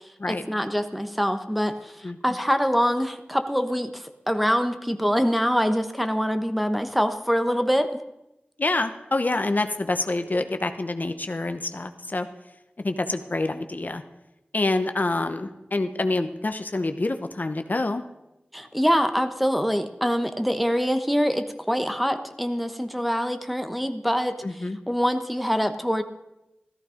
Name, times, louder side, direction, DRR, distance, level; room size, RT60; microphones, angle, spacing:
voice 1, 0.3-8.0 18.5-26.0, equal, ahead, 8 dB, 1.1 m, -25 dB
voice 2, 8.6-12.3 12.8-14.0 14.5-18.0 24.4-24.8, left 2 dB, 50° left, 8 dB, 0.9 m, -27 dB
14.0 x 13.5 x 5.1 m, 0.92 s
cardioid pair, 40°, 4 cm